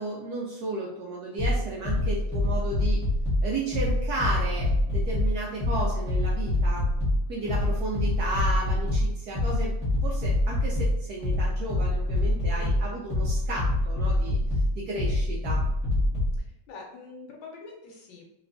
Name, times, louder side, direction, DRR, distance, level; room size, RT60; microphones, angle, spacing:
voice 1, 0.0-3.0 3.4-6.9 7.3-9.7 10.0-14.4 14.8-15.6, right 2 dB, 75° right, -3 dB, 0.9 m, -33 dB
sound 1, 1.4-16.4, left 1 dB, 5° left, 1.0 m, -26 dB
voice 2, 12.5-13.0 16.4-18.2, left 3 dB, 80° left, 0 dB, 1.5 m, -45 dB
3.2 x 2.9 x 2.6 m, 0.85 s
omnidirectional pair, 2.1 m